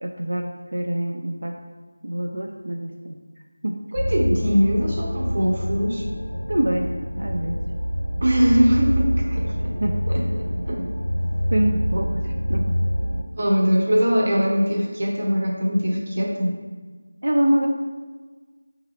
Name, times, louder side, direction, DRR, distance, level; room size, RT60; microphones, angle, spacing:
voice 1, 0.0-1.6 2.0-3.2 3.6-3.8 6.5-6.9 7.2-7.6 9.8-10.0 10.8-10.9 11.5-12.8 17.2-17.7, right 1 dB, 70° right, 1 dB, 0.3 m, -25 dB
voice 2, 3.9-6.1 8.2-9.7 10.1-10.2 10.7-10.8 13.4-16.5, equal, 40° right, -2 dB, 0.7 m, -21 dB
sound 1, 4.0-13.2, equal, 75° left, 0.5 m, -26 dB
5.3 x 2.3 x 3.3 m, 1.4 s
figure-of-eight pair, 175°, 0 cm